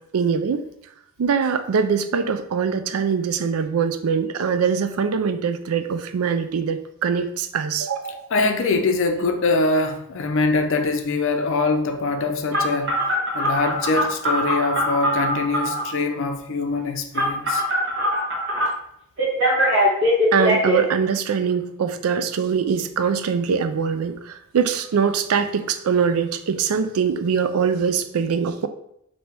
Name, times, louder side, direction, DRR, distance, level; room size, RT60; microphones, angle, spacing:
voice 1, 0.1-0.6 1.2-8.2 20.3-28.7, right 6 dB, 80° right, 0.4 m, -23 dB
voice 2, 8.3-13.0 13.3-17.6, left 3 dB, 60° left, 0.5 m, -23 dB
Telephone, 12.5-15.9 17.1-18.7 19.2-20.8, equal, 60° right, 1.3 m, -21 dB
3.3 x 2.8 x 4.5 m
head